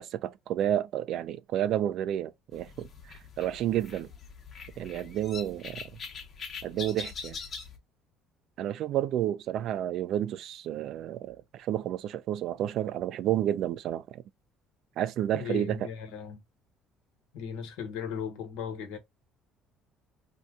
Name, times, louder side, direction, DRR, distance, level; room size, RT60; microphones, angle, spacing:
voice 1, 0.0-2.9 3.4-4.1 4.8-5.9 6.6-7.4 8.6-14.2 15.0-15.9, right 11 dB, 65° right, 0.4 m, -30 dB
sound 1, 2.5-7.8, left 5 dB, 40° left, 1.0 m, -43 dB
voice 2, 15.3-16.4 17.3-19.0, left 7 dB, 85° left, 1.2 m, -37 dB
2.7 x 2.2 x 3.6 m
cardioid pair, 105°, 0 cm